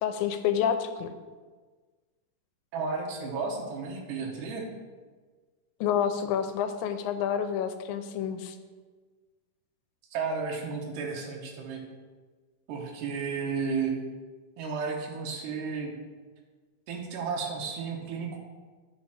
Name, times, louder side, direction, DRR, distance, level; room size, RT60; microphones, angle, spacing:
voice 1, 0.0-1.1 5.8-8.6, left 8 dB, 75° left, 8 dB, 1.9 m, -28 dB
voice 2, 2.7-4.6 10.1-11.8 12.7-14.0 14.6-15.9 16.9-18.4, right 5 dB, 85° right, 0 dB, 2.6 m, -33 dB
8.8 x 4.1 x 6.2 m, 1.4 s
omnidirectional pair, 3.8 m